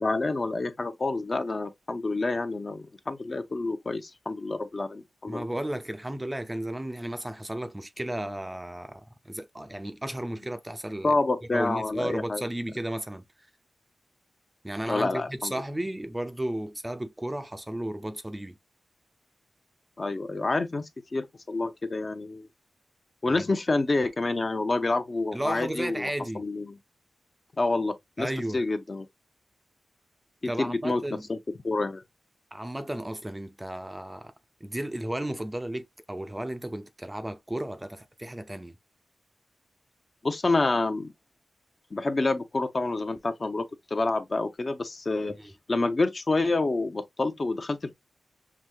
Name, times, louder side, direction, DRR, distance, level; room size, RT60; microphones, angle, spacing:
voice 1, 0.0-5.5 11.0-12.4 14.9-15.5 20.0-22.5 23.2-26.1 26.3-26.8 27.6-29.1 30.4-31.4 31.6-32.0 40.2-41.1 41.9-45.4 45.7-47.9, left 3 dB, 40° left, 0.7 m, -28 dB
voice 2, 5.3-11.1 11.5-13.3 14.6-18.6 23.3-23.5 25.3-26.5 28.2-28.6 30.5-31.3 32.5-34.3 34.6-38.8 45.4-45.5, right 1 dB, 15° right, 0.5 m, -34 dB
6.0 x 2.8 x 2.2 m
wide cardioid pair, 75°, 0 cm